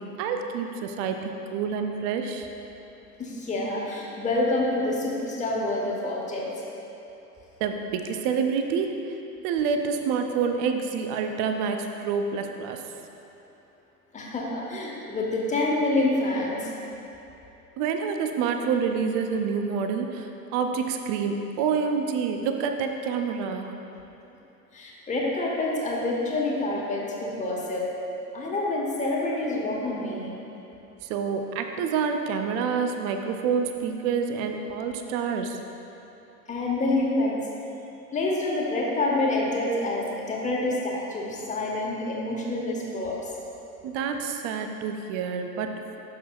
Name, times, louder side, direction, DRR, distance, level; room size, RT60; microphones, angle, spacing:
voice 1, 0.0-2.5 7.6-9.0 9.4-12.8 17.8-23.8 31.0-35.6 43.8-45.8, right 6 dB, 25° right, 5 dB, 0.3 m, -27 dB
voice 2, 3.2-6.5 14.1-16.7 24.7-27.9 28.3-30.4 36.5-37.4 38.1-43.3, left 2 dB, 15° left, -3 dB, 1.3 m, -27 dB
11.5 x 6.1 x 2.3 m, 2.9 s
hypercardioid pair, 95°, 47 cm